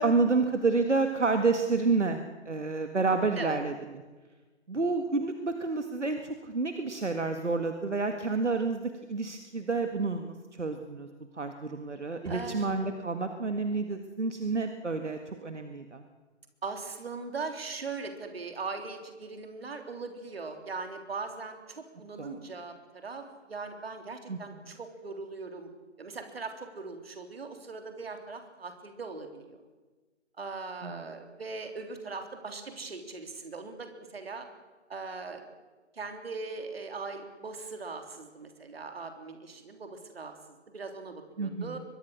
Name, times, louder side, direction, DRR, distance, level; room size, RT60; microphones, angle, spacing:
voice 1, 0.0-2.2 2.5-3.7 4.7-11.1 11.4-16.0 22.2-22.4 24.3-24.4 30.8-31.0 41.4-41.8, right 3 dB, 75° right, 6 dB, 1.9 m, -29 dB
voice 2, 12.2-12.9 16.6-25.7 26.0-29.6 30.4-34.5 34.9-35.4 35.9-40.3 40.7-41.8, right 4 dB, 55° right, 5 dB, 3.6 m, -40 dB
sound 1, 12.3-13.9, right 1 dB, 25° right, 7.5 m, -48 dB
23.0 x 21.0 x 6.5 m, 1.3 s
figure-of-eight pair, 140°, 36 cm